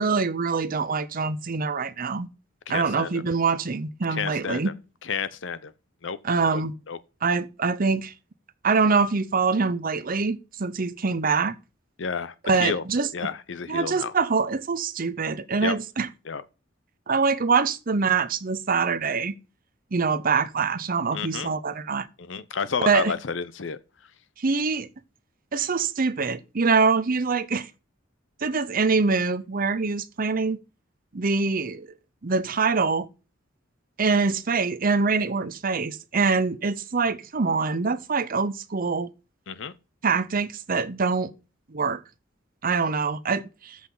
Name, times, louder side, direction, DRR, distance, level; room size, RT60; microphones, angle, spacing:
voice 1, 0.0-2.3 2.7-4.7 6.2-6.8 7.2-8.1 8.6-11.5 12.4-13.1 13.7-16.1 17.1-19.3 19.9-22.1 22.9-23.1 24.4-24.9 25.5-27.7 28.4-30.6 31.1-31.9 32.2-33.1 34.0-39.1 40.0-41.3 41.7-42.0 42.6-43.8, right 4 dB, 50° right, 0.7 m, -24 dB
voice 2, 2.7-3.2 4.1-4.6 5.0-5.7 6.0-6.2 6.5-6.6 6.9-7.0 12.0-12.8 13.1-14.1 15.6-15.8 16.3-16.4 21.1-21.5 22.2-23.8 39.5-39.7, left 5 dB, 70° left, 0.7 m, -30 dB
13.0 x 6.0 x 3.9 m
head